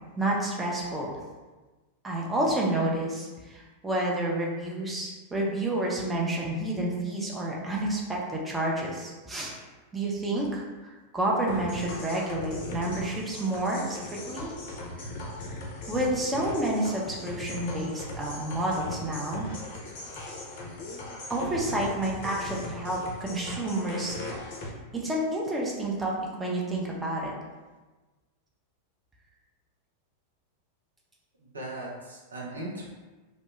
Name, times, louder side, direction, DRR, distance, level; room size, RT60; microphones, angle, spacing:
voice 1, 0.2-1.1 2.0-9.6 9.9-14.5 15.9-19.5 21.3-24.4 24.9-26.1 26.4-27.3, right 1 dB, 10° right, -3 dB, 0.4 m, -29 dB
sound 1, 11.5-24.7, left 2 dB, 50° left, 0.4 m, -39 dB
voice 2, 31.4-32.9, right 1 dB, 75° right, -4 dB, 0.5 m, -38 dB
2.0 x 2.0 x 3.0 m, 1.2 s
figure-of-eight pair, 90°, 0 cm